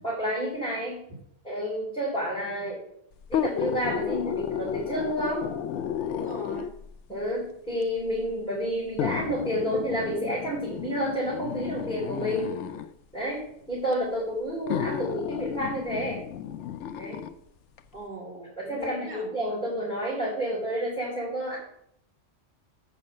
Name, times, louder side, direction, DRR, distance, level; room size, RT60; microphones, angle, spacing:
voice 1, 0.0-0.9 1.4-2.8 3.3-5.5 7.1-12.6 13.1-16.2 17.0-17.2 18.6-21.6, equal, 5° left, -9 dB, 3.8 m, -30 dB
sound 1, 3.2-6.9 7.8-7.9 9.0-12.9 13.9-14.0 14.7-17.3 17.8-17.9, left 9 dB, 75° left, 0.9 m, -32 dB
voice 2, 6.1-6.7 17.9-19.3, equal, 50° right, -3 dB, 2.9 m, -40 dB
7.2 x 5.6 x 6.6 m, 0.70 s
omnidirectional pair, 1.3 m